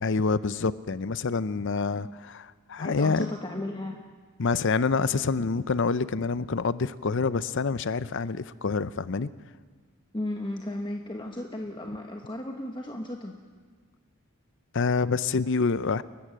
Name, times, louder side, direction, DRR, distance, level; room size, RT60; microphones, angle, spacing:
voice 1, 0.0-3.3 4.4-9.3 14.7-16.0, left 4 dB, 55° left, 15 dB, 0.6 m, -27 dB
voice 2, 2.8-4.0 10.1-13.3, left 1 dB, 20° left, 2 dB, 1.2 m, -35 dB
29.5 x 11.5 x 7.6 m, 1.5 s
head